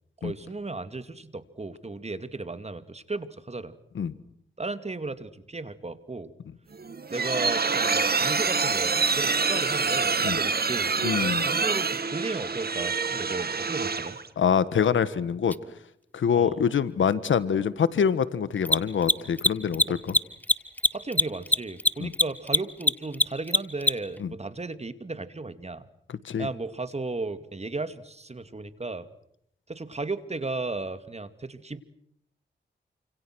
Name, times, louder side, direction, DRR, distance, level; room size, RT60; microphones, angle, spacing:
voice 1, 0.2-3.7 4.6-6.3 7.1-10.9 11.4-14.2 16.3-16.6 19.9-20.0 20.9-25.8 26.4-29.1 29.7-31.8, right 3 dB, 35° right, 12 dB, 2.4 m, -35 dB
sound 1, 6.7-14.3, right 4 dB, 55° right, 2.3 m, -26 dB
voice 2, 11.0-11.5 14.4-15.6 16.1-20.1 22.0-22.1 24.2-24.3 26.1-26.5, left 7 dB, 85° left, 16 dB, 1.5 m, -25 dB
Mechanisms, 15.5-15.6 18.6-24.2, left 1 dB, 10° left, 1.2 m, -22 dB
29.0 x 26.5 x 6.3 m, 0.72 s
cardioid pair, 55°, 20 cm